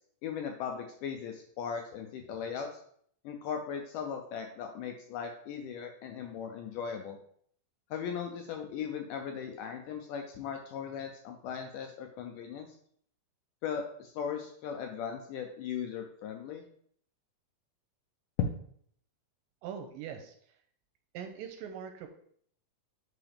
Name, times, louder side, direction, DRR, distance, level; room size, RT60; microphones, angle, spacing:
voice 1, 0.2-2.8 3.2-7.2 7.9-12.7 13.6-16.6, left 7 dB, 85° left, 4 dB, 1.9 m, -38 dB
voice 2, 19.6-20.6 21.1-22.1, right 8 dB, 80° right, 6 dB, 2.1 m, -42 dB
8.6 x 3.9 x 3.4 m, 0.62 s
omnidirectional pair, 4.2 m